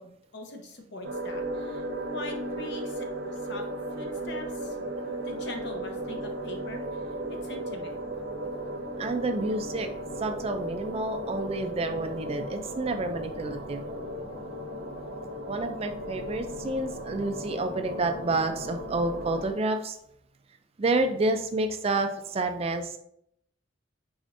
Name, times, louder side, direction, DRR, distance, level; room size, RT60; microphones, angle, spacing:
voice 1, 0.0-1.8 2.1-3.1 3.4-3.6 4.0-4.8 5.2-7.0 7.3-8.0, left 2 dB, 60° left, 3 dB, 0.8 m, -42 dB
sound 1, 1.0-19.5, right 1 dB, 75° right, 0.9 m, -36 dB
voice 2, 9.0-9.9 10.2-13.8 15.5-20.0 20.8-23.0, right 2 dB, 30° right, 6 dB, 0.4 m, -29 dB
4.9 x 4.2 x 2.6 m, 0.71 s
head